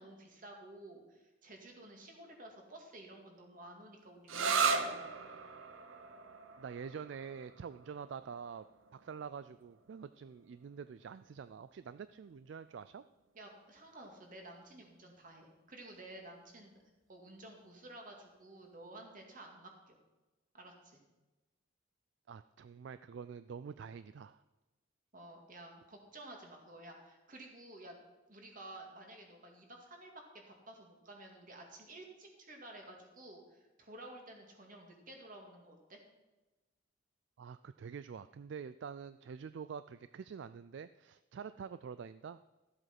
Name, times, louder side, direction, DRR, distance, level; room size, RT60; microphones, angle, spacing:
voice 1, 0.0-5.0 13.3-16.8 17.1-20.0 20.5-21.0 25.1-28.0 28.3-30.1 30.5-36.0, right 1 dB, 40° right, 2 dB, 2.2 m, -52 dB
sound 1, 4.3-11.7, right 5 dB, 80° right, 0.9 m, -38 dB
voice 2, 6.6-8.7 8.9-13.0 22.3-24.4 37.4-42.4, right 6 dB, 60° right, 13 dB, 0.3 m, -46 dB
13.5 x 7.8 x 6.0 m, 1.1 s
head